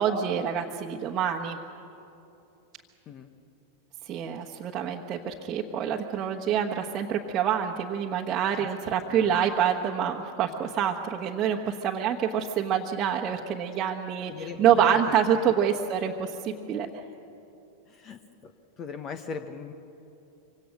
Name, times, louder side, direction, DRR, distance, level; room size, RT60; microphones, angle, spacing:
voice 1, 0.0-1.6 4.1-17.0, right 8 dB, 30° right, -1 dB, 1.4 m, -26 dB
voice 2, 9.1-9.5 14.3-15.2 17.9-18.5 18.8-19.7, left 5 dB, 30° left, 8 dB, 1.2 m, -39 dB
25.5 x 25.0 x 6.4 m, 2.8 s
figure-of-eight pair, 90°, 0 cm